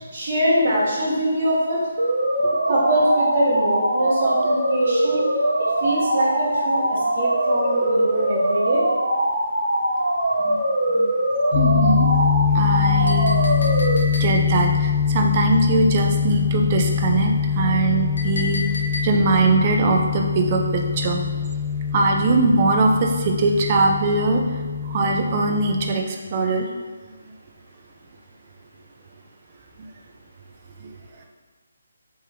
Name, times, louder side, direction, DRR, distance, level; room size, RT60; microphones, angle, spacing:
voice 1, 0.1-1.8 2.7-5.2 5.8-8.8, right 1 dB, 55° right, -6 dB, 1.0 m, -22 dB
sound 1, 2.0-14.0, right 1 dB, 80° right, 0.7 m, -22 dB
sound 2, 11.5-25.9, left 7 dB, 40° left, 0.4 m, -23 dB
voice 2, 11.5-12.1 12.5-13.3 14.2-18.6 19.0-21.2 21.9-24.4 24.8-26.7 30.8-30.9, right 3 dB, 35° right, 2 dB, 0.4 m, -21 dB
Chink clink, 13.1-14.6 18.2-19.4, left 2 dB, 75° left, 0.8 m, -33 dB
3.4 x 3.3 x 2.9 m, 1.4 s
figure-of-eight pair, 150°, 0 cm